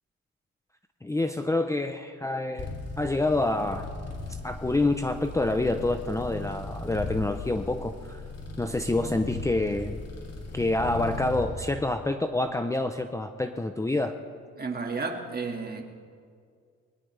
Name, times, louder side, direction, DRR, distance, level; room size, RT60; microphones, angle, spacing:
voice 1, 1.0-3.9 4.3-8.2 8.6-10.0 10.5-14.2, left 2 dB, 10° left, 7 dB, 0.7 m, -27 dB
sound 1, 2.6-11.5, left 3 dB, 55° left, 2.8 m, -37 dB
voice 2, 14.6-15.9, right 4 dB, 30° right, 3 dB, 2.1 m, -32 dB
21.5 x 19.0 x 3.4 m, 2.1 s
cardioid pair, 90°, 30 cm